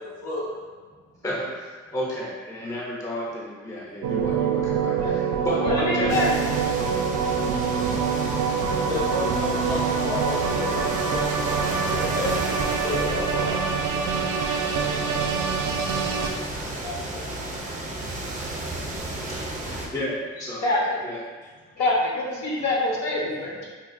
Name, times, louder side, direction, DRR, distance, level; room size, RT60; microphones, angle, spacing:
voice 1, 0.2-0.5 8.4-14.0, left 2 dB, 85° left, -7 dB, 1.0 m, -32 dB
voice 2, 1.2-6.2 6.6-6.7 19.6-20.6 21.0-21.2, left 1 dB, 10° left, -4 dB, 0.5 m, -32 dB
sound 1, 4.0-16.3, right 6 dB, 70° right, 0.4 m, -25 dB
voice 3, 5.6-6.3 16.8-17.3 20.6-21.0 21.8-23.7, left 2 dB, 65° left, -4 dB, 0.9 m, -25 dB
sound 2, 6.1-19.9, right 1 dB, 25° right, 0.6 m, -33 dB
4.0 x 2.2 x 2.5 m, 1.4 s
cardioid pair, 90°, 30 cm